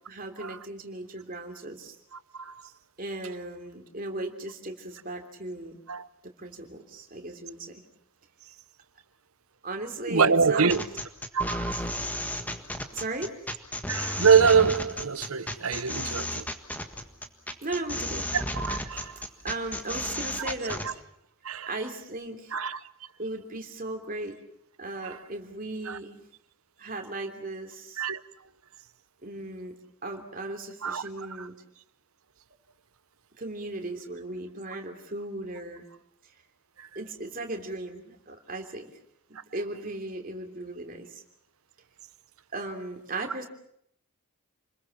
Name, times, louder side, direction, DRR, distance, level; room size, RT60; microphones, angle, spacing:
voice 1, 0.1-1.9 3.0-5.8 6.2-7.8 9.6-10.8 12.9-13.3 17.6-18.3 19.4-20.8 21.7-22.6 23.2-24.4 24.8-26.2 26.8-28.0 29.2-29.7 30.0-31.5 33.4-35.9 36.2-36.3 36.9-38.9 39.3-41.2 42.5-43.5, right 2 dB, 40° right, 3.2 m, -37 dB
voice 2, 2.1-2.7 5.9-6.1 10.1-10.8 11.3-12.0 13.9-16.5 18.3-19.2 20.4-20.9 21.4-21.7 22.5-22.8 25.0-25.2 25.8-26.0 28.0-28.2 30.8-31.5 36.8-36.9, right 6 dB, 80° right, 1.0 m, -25 dB
sound 1, 10.7-20.9, left 1 dB, 5° left, 1.6 m, -33 dB
29.0 x 21.5 x 7.3 m
head